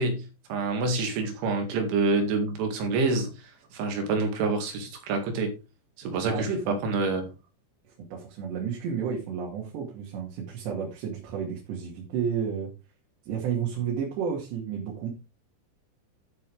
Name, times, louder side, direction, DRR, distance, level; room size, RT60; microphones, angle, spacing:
voice 1, 0.0-3.3 3.7-5.5 6.0-7.3, right 3 dB, 90° right, 4.5 m, -27 dB
voice 2, 6.2-6.7 8.1-12.7 13.3-15.1, right 7 dB, 70° right, 4.3 m, -31 dB
12.5 x 7.5 x 3.5 m
omnidirectional pair, 5.3 m